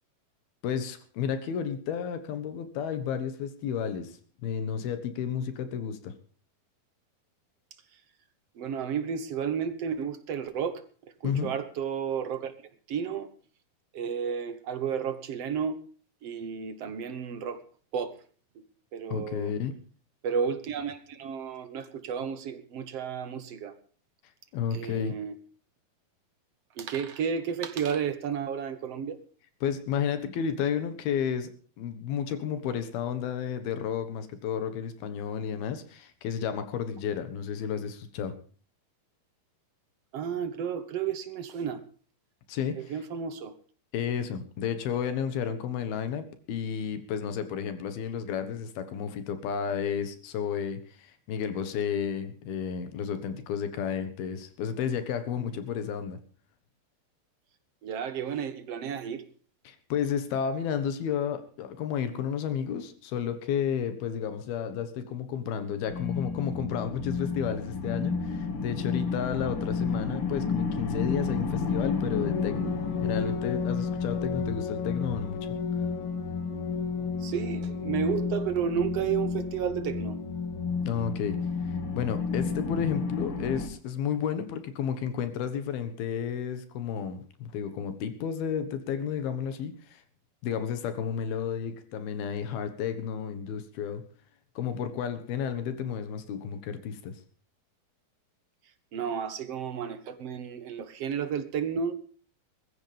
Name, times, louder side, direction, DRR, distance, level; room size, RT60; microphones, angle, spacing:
voice 1, 0.6-6.1 11.2-11.5 19.1-19.7 24.5-25.1 29.6-38.4 42.5-43.0 43.9-56.2 59.6-75.5 75.7-75.8 80.8-90.0 90.4-94.1 94.6-97.2, left 8 dB, 80° left, 11 dB, 3.3 m, -32 dB
voice 2, 8.6-10.8 11.2-12.5 12.9-13.3 13.9-15.8 16.2-17.6 17.9-18.2 18.9-19.5 20.2-23.7 24.7-25.3 26.8-29.2 40.1-41.8 42.8-43.5 57.8-59.2 77.2-80.2 98.9-101.9, right 7 dB, 55° right, 11 dB, 1.8 m, -32 dB
sound 1, 65.9-83.7, left 5 dB, 40° left, 2.7 m, -31 dB
21.5 x 15.0 x 3.4 m, 0.41 s
omnidirectional pair, 4.3 m